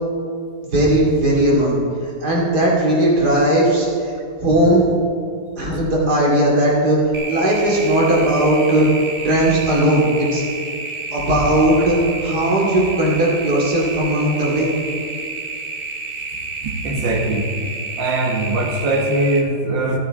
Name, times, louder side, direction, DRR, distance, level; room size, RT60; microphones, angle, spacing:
voice 1, 0.7-1.8 2.2-4.1 4.4-4.9 5.6-7.0 7.3-8.9 9.2-10.4 11.1-12.0 12.2-14.7, right 1 dB, 60° right, -4 dB, 3.1 m, -17 dB
sound 1, 7.1-19.4, right 3 dB, 40° right, 1.0 m, -30 dB
voice 2, 16.6-17.5 18.0-20.0, right 2 dB, 80° right, 2 dB, 2.1 m, -21 dB
13.0 x 12.5 x 3.7 m, 2.3 s
omnidirectional pair, 2.0 m